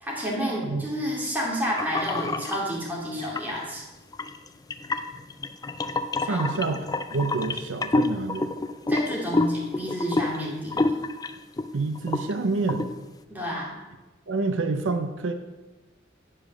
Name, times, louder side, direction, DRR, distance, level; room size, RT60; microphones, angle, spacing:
voice 1, 0.0-3.8 6.3-6.7 8.9-11.0 13.3-13.8, equal, 10° right, -4 dB, 2.3 m, -30 dB
sound 1, 1.8-2.6 3.2-3.6 4.1-11.7 12.0-12.3 12.7-12.9, left 2 dB, 20° left, 0.4 m, -27 dB
voice 2, 6.2-6.8 7.1-8.5 11.7-12.9 14.3-15.3, right 3 dB, 85° right, 8 dB, 0.6 m, -27 dB
8.8 x 5.0 x 6.2 m, 1.1 s
head